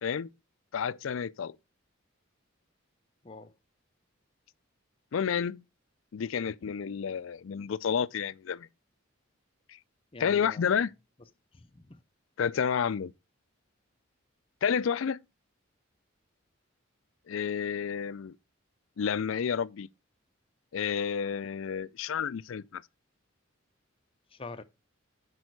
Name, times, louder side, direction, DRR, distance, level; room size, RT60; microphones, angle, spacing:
voice 1, 0.7-1.6 5.1-5.6 6.1-8.7 10.2-10.9 12.4-13.1 14.6-15.2 17.3-18.3 19.0-19.9 20.7-22.8, left 7 dB, 70° left, 0.4 m, -30 dB
voice 2, 10.1-10.8 11.5-12.0 24.3-24.6, left 3 dB, 25° left, 0.6 m, -45 dB
8.0 x 5.4 x 4.6 m
head